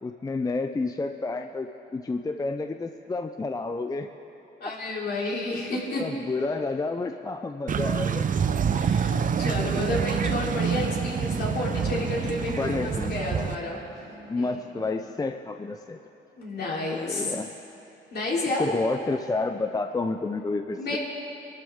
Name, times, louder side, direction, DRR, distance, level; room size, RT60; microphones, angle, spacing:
voice 1, 0.0-4.1 6.0-8.2 9.5-10.2 12.5-13.5 14.3-16.0 16.9-17.5 18.6-21.0, left 3 dB, 20° left, 7 dB, 0.5 m, -30 dB
voice 2, 4.6-6.0 8.7-13.8 14.4-14.6 16.4-17.3 18.1-18.7 20.8-21.0, left 2 dB, 55° left, -4 dB, 3.6 m, -31 dB
sound 1, 7.7-13.6, right 7 dB, 40° right, 0.6 m, -27 dB
sound 2, 9.9-15.2, left 2 dB, 70° left, 3.1 m, -43 dB
23.0 x 12.5 x 3.7 m, 3.0 s
cardioid pair, 90°, 20 cm